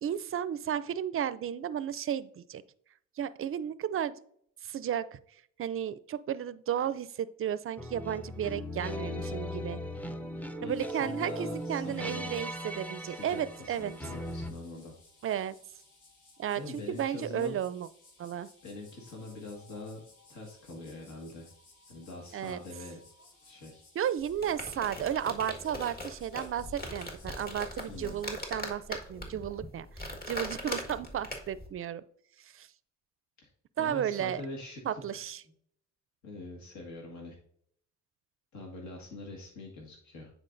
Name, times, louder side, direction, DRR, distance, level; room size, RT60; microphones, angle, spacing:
voice 1, 0.0-2.6 3.2-4.1 4.6-5.2 5.6-9.8 10.6-13.9 15.2-15.6 16.4-17.9 18.2-18.5 22.3-22.6 24.0-32.0 32.4-32.7 33.8-34.4 34.8-35.4, right 9 dB, 45° right, 16 dB, 0.4 m, -33 dB
sound 1, 7.8-14.5, left 1 dB, 5° left, 0.5 m, -38 dB
voice 2, 10.6-12.3 13.0-14.9 16.5-17.6 18.6-20.0 20.3-21.5 21.9-23.0 23.4-23.8 27.9-28.2 33.4-33.5 33.8-35.2 36.2-37.4 38.5-40.3, left 2 dB, 65° left, -1 dB, 1.8 m, -44 dB
sound 2, 10.7-28.6, left 3 dB, 85° left, 1.6 m, -60 dB
sound 3, 24.2-31.7, left 1 dB, 30° left, 1.7 m, -40 dB
9.7 x 4.6 x 2.6 m, 0.64 s
cardioid pair, 90°, 30 cm